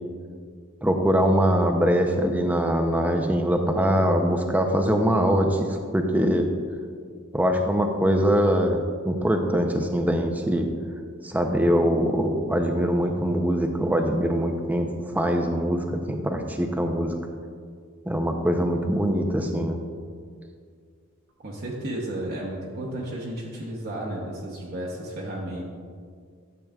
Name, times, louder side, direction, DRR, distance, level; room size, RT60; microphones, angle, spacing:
voice 1, 0.8-6.5 7.3-10.7 11.2-14.9 15.1-17.1 18.1-19.8, equal, 5° right, 4 dB, 0.5 m, -23 dB
voice 2, 21.4-25.7, right 1 dB, 45° right, -3 dB, 0.9 m, -33 dB
12.0 x 7.6 x 2.3 m, 2.1 s
head